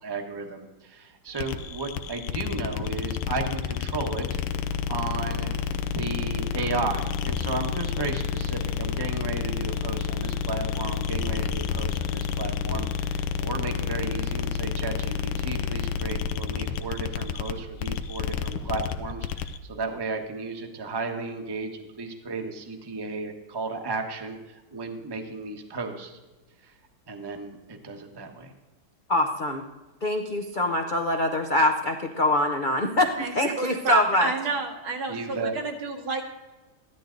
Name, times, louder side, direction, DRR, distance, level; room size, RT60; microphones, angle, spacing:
voice 1, 0.0-4.4 4.9-5.5 5.9-21.7 22.0-26.2 26.6-26.7 27.1-28.5 35.1-35.5, right 3 dB, 15° right, 4 dB, 0.8 m, -34 dB
sound 1, 1.3-19.6, left 7 dB, 85° left, 1.5 m, -29 dB
voice 2, 29.1-29.6 30.0-34.3, left 1 dB, 70° left, 3 dB, 0.4 m, -24 dB
voice 3, 33.2-36.2, right 3 dB, 80° right, 2 dB, 2.5 m, -30 dB
14.0 x 11.5 x 3.9 m, 1.2 s
omnidirectional pair, 2.2 m